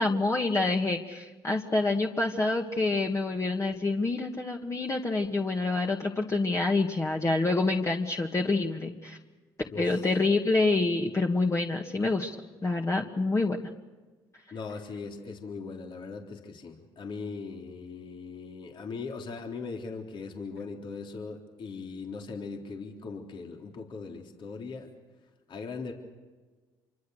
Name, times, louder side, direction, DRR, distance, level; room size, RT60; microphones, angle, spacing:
voice 1, 0.0-9.2 9.8-12.4 12.6-13.6, left 3 dB, 30° left, 1 dB, 2.1 m, -27 dB
voice 2, 9.7-10.0 14.5-24.9 25.5-25.9, left 4 dB, 55° left, 1 dB, 3.7 m, -39 dB
26.5 x 24.5 x 6.6 m, 1.3 s
supercardioid pair, 65°, 10 cm